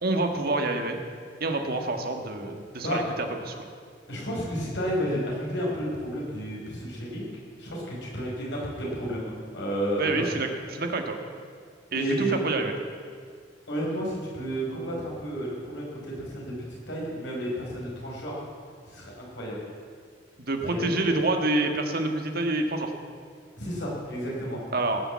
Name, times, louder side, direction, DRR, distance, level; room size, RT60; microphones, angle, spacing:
voice 1, 0.0-1.0 1.4-3.6 10.0-11.2 11.9-12.7 20.4-22.9 24.7-25.0, right 2 dB, 55° right, 4 dB, 1.6 m, -27 dB
voice 2, 4.1-7.3 7.6-10.5 11.9-12.3 13.7-16.5 16.9-18.4 18.9-19.6 20.6-21.1 23.6-24.6, equal, 80° left, -5 dB, 5.2 m, -31 dB
19.0 x 6.9 x 8.4 m, 2.1 s
head